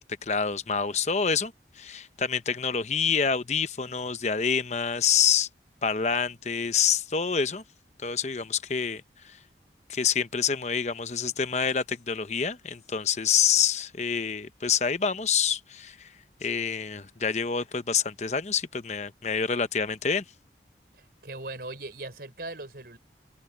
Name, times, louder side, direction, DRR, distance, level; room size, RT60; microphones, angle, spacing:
voice 1, 0.2-5.5 5.8-7.6 8.0-9.4 9.9-16.1 16.4-20.2, left 7 dB, 40° left, 0.8 m, -27 dB
voice 2, 20.9-23.0, right 2 dB, 60° right, 4.5 m, -39 dB
head